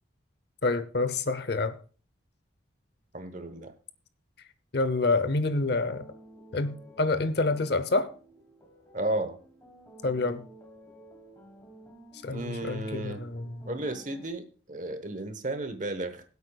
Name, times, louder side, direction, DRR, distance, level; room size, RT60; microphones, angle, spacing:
voice 1, 0.6-1.7 4.7-6.1 6.5-8.1 10.0-10.4 12.2-13.8, left 3 dB, 55° left, 0.7 m, -27 dB
voice 2, 3.1-3.7 8.9-9.4 12.3-13.2 13.7-16.2, right 2 dB, 40° right, 1.0 m, -33 dB
sound 1, 5.7-14.3, right 1 dB, 15° left, 1.3 m, -52 dB
20.5 x 8.2 x 2.3 m
head